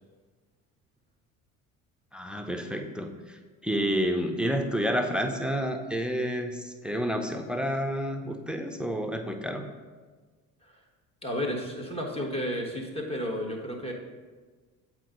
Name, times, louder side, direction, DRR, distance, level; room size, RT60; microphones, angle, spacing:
voice 1, 2.1-9.6, equal, ahead, 5 dB, 0.7 m, -30 dB
voice 2, 11.2-13.9, equal, 15° left, 0 dB, 1.4 m, -32 dB
7.6 x 4.6 x 3.9 m, 1.4 s
hypercardioid pair, 60°, 42 cm